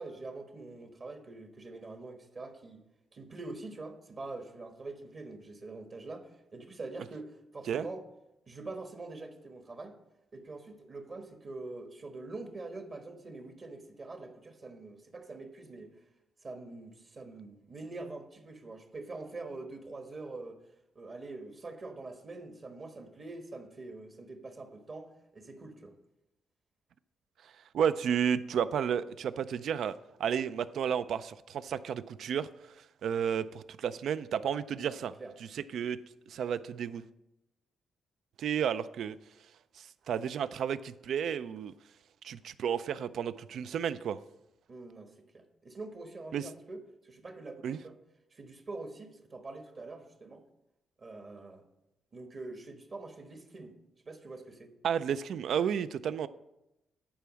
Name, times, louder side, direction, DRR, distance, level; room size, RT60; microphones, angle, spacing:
voice 1, 0.0-2.8 3.1-8.0 8.5-9.9 10.3-15.9 16.4-20.6 20.9-25.9 34.8-35.3 44.7-47.9 48.3-50.4 51.0-51.6 52.1-53.8 54.0-54.7, right 3 dB, 40° right, 5 dB, 1.2 m, -44 dB
voice 2, 27.7-29.9 30.2-32.5 33.0-35.1 35.5-36.0 36.3-37.0 38.4-39.2 39.8-41.7 42.2-44.2 46.3-46.5 47.6-47.8 54.8-56.3, right 8 dB, 70° right, 15 dB, 0.4 m, -32 dB
10.0 x 4.7 x 6.2 m, 0.90 s
cardioid pair, 105°, 0 cm